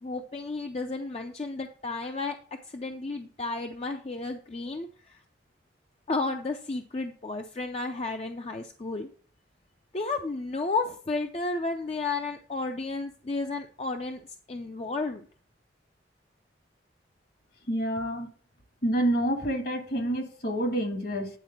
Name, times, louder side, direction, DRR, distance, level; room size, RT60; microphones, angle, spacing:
voice 1, 0.0-2.4 2.7-5.2 6.1-9.1 9.9-15.2, left 3 dB, 35° left, 0.5 m, -32 dB
voice 2, 17.7-18.3 18.8-21.3, right 1 dB, 55° left, 1.5 m, -28 dB
9.3 x 4.2 x 5.7 m
head